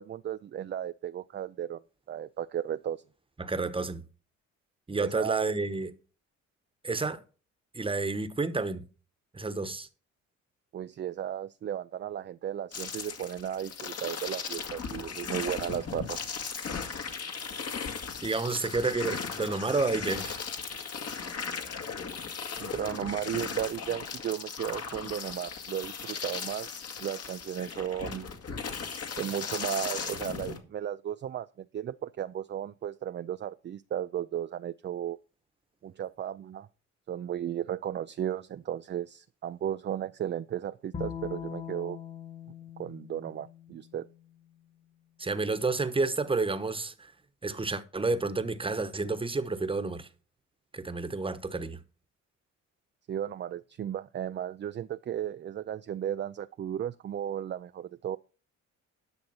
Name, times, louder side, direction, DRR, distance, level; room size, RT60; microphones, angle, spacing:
voice 1, 0.0-1.8 2.1-3.0 5.0-5.5 10.7-16.3 22.6-28.3 29.2-35.2 35.8-36.7 37.1-42.0 42.8-44.1 53.1-58.2, right 10 dB, 40° right, 0.4 m, -35 dB
voice 2, 3.4-4.0 4.9-5.9 6.8-7.2 7.7-8.9 9.3-9.9 18.2-20.4 45.2-47.1 47.4-50.1 50.7-51.8, right 3 dB, 20° right, 1.1 m, -30 dB
sound 1, 12.7-30.6, left 6 dB, 55° left, 1.9 m, -37 dB
Bowed string instrument, 40.9-44.2, left 8 dB, 30° left, 1.7 m, -41 dB
10.5 x 6.3 x 5.6 m
cardioid pair, 90°, 30 cm